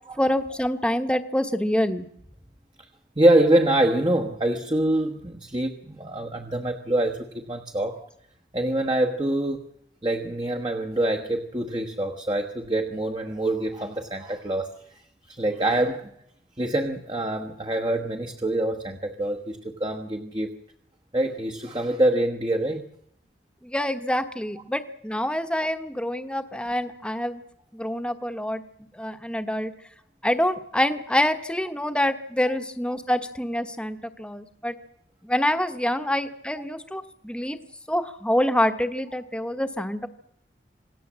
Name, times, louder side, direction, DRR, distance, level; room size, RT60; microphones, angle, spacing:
voice 1, 0.2-2.0 23.6-27.4 27.7-28.6 28.9-29.7 30.2-34.8 35.2-37.6 37.9-40.1, left 1 dB, 5° left, 8 dB, 1.2 m, -26 dB
voice 2, 3.2-8.0 8.5-9.6 10.0-15.0 15.3-16.1 16.6-20.5 21.1-22.8, right 1 dB, 25° right, 5 dB, 1.2 m, -25 dB
27.0 x 18.0 x 7.5 m, 0.75 s
head